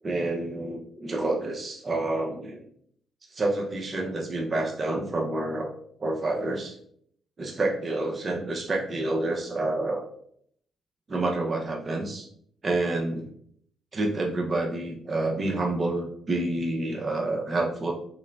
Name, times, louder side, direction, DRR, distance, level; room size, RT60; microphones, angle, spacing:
voice 1, 0.0-2.6 3.3-5.7 6.0-6.8 7.4-10.1 11.1-12.3 12.6-13.3 13.9-17.9, right 2 dB, 35° right, 0 dB, 0.8 m, -28 dB
6.3 x 2.2 x 2.5 m, 0.65 s
cardioid pair, 90°, 0 cm